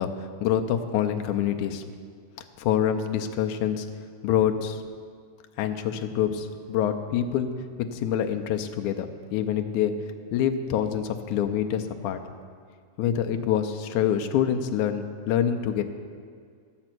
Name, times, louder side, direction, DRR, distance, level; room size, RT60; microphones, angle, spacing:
voice 1, 0.0-1.8 2.6-3.9 4.2-4.8 5.6-7.5 7.9-10.0 10.3-12.2 13.0-15.8, left 9 dB, 90° left, 6 dB, 2.1 m, -26 dB
13.5 x 7.8 x 6.0 m, 2.1 s
omnidirectional pair, 3.4 m